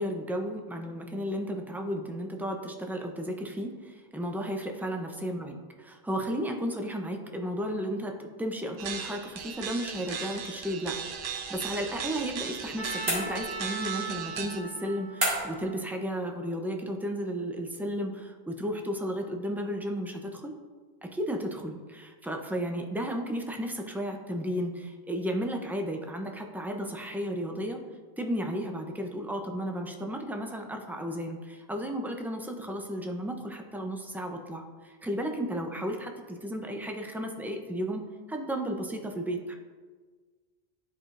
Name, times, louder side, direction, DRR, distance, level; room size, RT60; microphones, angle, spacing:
voice 1, 0.0-11.0 11.2-20.5 21.0-27.8 28.2-39.5, equal, 5° right, 3 dB, 0.4 m, -34 dB
sound 1, 8.8-14.6, right 7 dB, 60° right, 0.8 m, -37 dB
Trumpet, 12.8-16.8, right 3 dB, 50° left, 1.3 m, -40 dB
sound 2, 13.1-13.8 15.2-15.7, right 1 dB, 85° right, 2.5 m, -30 dB
12.0 x 4.8 x 2.5 m, 1.5 s
omnidirectional pair, 1.0 m